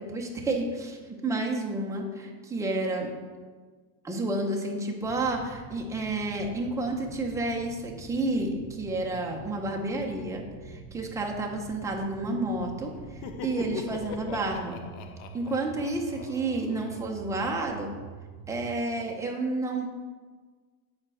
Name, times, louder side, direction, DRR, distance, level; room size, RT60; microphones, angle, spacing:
voice 1, 0.0-3.1 4.0-12.9 13.4-14.8 15.3-17.9 18.5-19.9, right 2 dB, 5° right, 0 dB, 0.7 m, -30 dB
sound 1, 5.0-18.8, right 5 dB, 60° right, 1.2 m, -46 dB
Laughter, 13.0-17.7, left 6 dB, 70° left, 0.8 m, -41 dB
7.3 x 4.4 x 6.2 m, 1.4 s
supercardioid pair, 145°, 48 cm